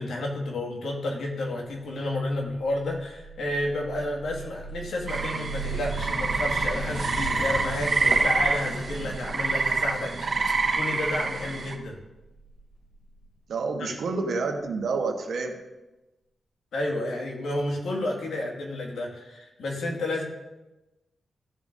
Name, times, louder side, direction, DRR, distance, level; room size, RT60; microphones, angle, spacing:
voice 1, 0.0-12.0 13.8-13.9 16.7-20.2, left 1 dB, 85° left, -1 dB, 1.9 m, -31 dB
sound 1, 3.2-13.2, right 2 dB, 65° left, 3.5 m, -37 dB
sound 2, 5.1-11.7, right 3 dB, 55° right, 1.3 m, -27 dB
voice 2, 13.5-15.6, right 4 dB, 80° right, 3 dB, 1.1 m, -28 dB
15.0 x 7.3 x 2.6 m, 1.0 s
cardioid pair, 80°, 0 cm